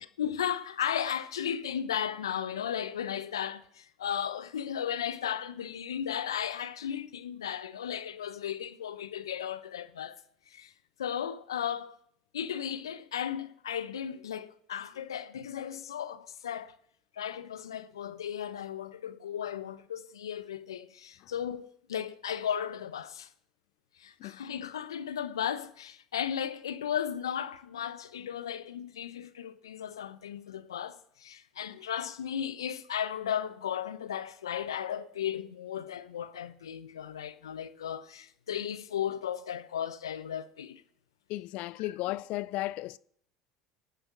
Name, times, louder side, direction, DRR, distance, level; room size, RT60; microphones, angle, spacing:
voice 1, 0.2-10.2 10.5-10.7 11.0-11.9 12.3-16.8 17.2-23.3 24.0-40.8 41.8-41.9, left 9 dB, 85° left, 0.8 m, -35 dB
voice 2, 41.3-43.0, left 18 dB, 60° left, 0.5 m, -34 dB
20.0 x 8.9 x 6.1 m
hypercardioid pair, 70°, 2 cm